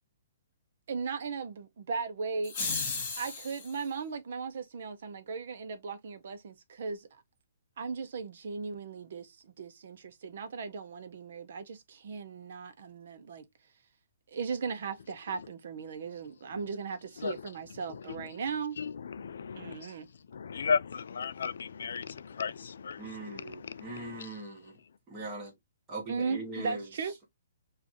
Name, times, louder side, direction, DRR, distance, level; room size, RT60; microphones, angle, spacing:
voice 1, 0.9-2.5 3.2-7.1 7.8-13.4 14.3-18.8 19.5-20.1 26.1-27.1, right 5 dB, 55° right, 0.7 m, -37 dB
sound 1, 2.4-3.8, left 4 dB, 25° left, 1.8 m, -34 dB
voice 2, 17.9-18.3 18.8-19.9 20.3-24.4, left 6 dB, 70° left, 0.4 m, -35 dB
voice 3, 23.0-24.8 25.1-25.5 25.9-26.9, right 2 dB, 15° right, 1.3 m, -41 dB
6.1 x 2.4 x 2.9 m
hypercardioid pair, 170°, 0 cm